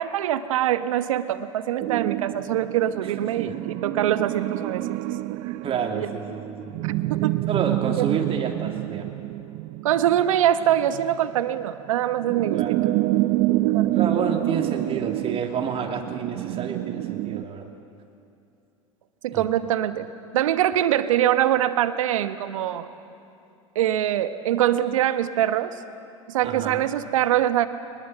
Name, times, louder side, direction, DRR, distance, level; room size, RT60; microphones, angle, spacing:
voice 1, 0.0-4.9 5.9-6.1 7.1-7.4 8.0-8.1 9.8-12.6 13.7-13.9 19.2-20.1 20.3-22.9 23.7-25.7 26.3-27.7, right 11 dB, 75° right, 11 dB, 1.2 m, -23 dB
sound 1, 1.8-17.4, right 16 dB, 55° right, 0.7 m, -27 dB
voice 2, 5.6-6.7 7.5-9.1 12.5-12.8 13.9-17.7 19.3-19.5 26.4-26.9, right 6 dB, 35° right, 2 dB, 2.7 m, -29 dB
22.5 x 20.5 x 8.0 m, 2.6 s
hypercardioid pair, 90°, 17 cm